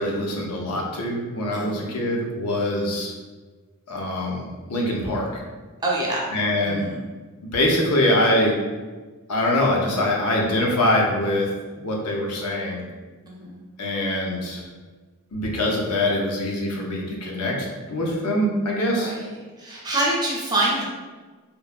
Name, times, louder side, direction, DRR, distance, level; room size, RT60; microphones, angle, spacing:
voice 1, 0.0-3.1 3.9-5.4 6.3-6.9 7.4-8.6 9.3-11.5 11.8-12.8 13.8-14.7 15.3-17.6 17.9-19.1, left 1 dB, 90° left, -1 dB, 0.6 m, -23 dB
voice 2, 1.5-1.9 5.8-6.2 6.6-6.9 13.3-13.6 19.0-19.3 19.6-20.8, right 1 dB, 20° right, -5 dB, 0.5 m, -26 dB
3.0 x 2.1 x 2.4 m, 1.3 s
head